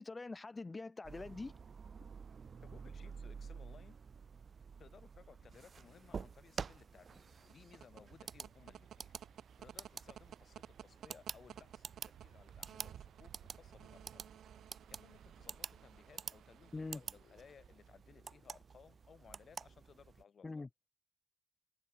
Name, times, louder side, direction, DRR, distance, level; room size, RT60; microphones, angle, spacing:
voice 1, 0.0-1.5 16.7-17.0 20.4-20.7, left 3 dB, 20° left, 0.3 m, -44 dB
sound 1, 1.0-20.2, right 6 dB, 40° right, 1.2 m, -50 dB
voice 2, 2.6-4.0 4.8-9.1 9.6-14.3 14.9-20.7, left 6 dB, 45° left, 1.8 m, -61 dB
sound 2, 5.4-19.2, left 9 dB, 65° left, 6.7 m, -74 dB
sound 3, 7.4-18.1, right 10 dB, 85° right, 0.7 m, -56 dB
wide cardioid pair, 175°, 0 cm